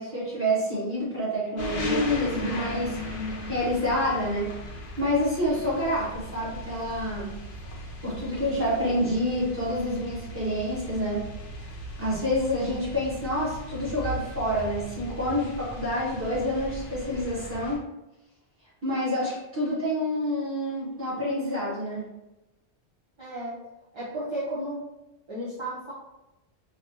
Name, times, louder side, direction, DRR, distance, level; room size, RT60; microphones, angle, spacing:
voice 1, 0.0-3.0 3.2-4.5 5.0-7.3 8.0-11.2 12.0-17.8 18.8-22.1, equal, 10° right, -8 dB, 1.5 m, -28 dB
sound 1, 1.6-17.8, left 1 dB, 55° left, 0.8 m, -36 dB
voice 2, 23.2-23.6 23.9-24.8 25.3-25.9, right 1 dB, 30° right, -9 dB, 0.8 m, -33 dB
4.8 x 2.4 x 2.8 m, 0.97 s
omnidirectional pair, 1.1 m